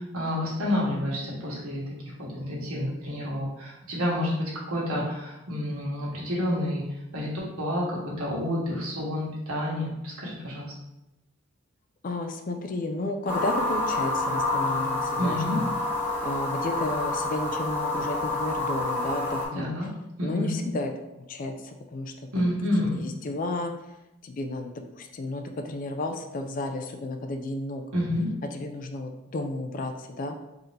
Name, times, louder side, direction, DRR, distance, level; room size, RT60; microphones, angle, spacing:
voice 1, 0.1-1.8 2.2-6.8 7.1-10.7 15.2-15.6 19.5-19.9 20.2-20.6 22.3-23.0 27.9-28.3, left 1 dB, 90° right, -5 dB, 1.3 m, -29 dB
voice 2, 12.0-15.7 16.2-19.7 20.2-22.5 22.9-23.7 24.2-27.8 28.5-30.4, left 2 dB, 40° left, 5 dB, 0.3 m, -33 dB
sound 1, 13.3-19.5, left 2 dB, 10° left, 0.8 m, -28 dB
3.9 x 2.7 x 3.2 m, 0.93 s
head